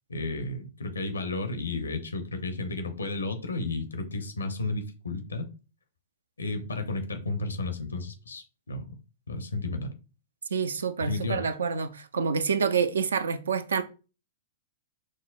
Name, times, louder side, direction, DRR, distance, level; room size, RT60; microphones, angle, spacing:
voice 1, 0.1-5.5 6.4-8.9 9.3-9.9 11.0-11.5, left 3 dB, 80° left, 0.6 m, -32 dB
voice 2, 10.5-13.8, right 6 dB, 75° right, 0.3 m, -27 dB
6.1 x 2.1 x 2.3 m
figure-of-eight pair, 110°, 0 cm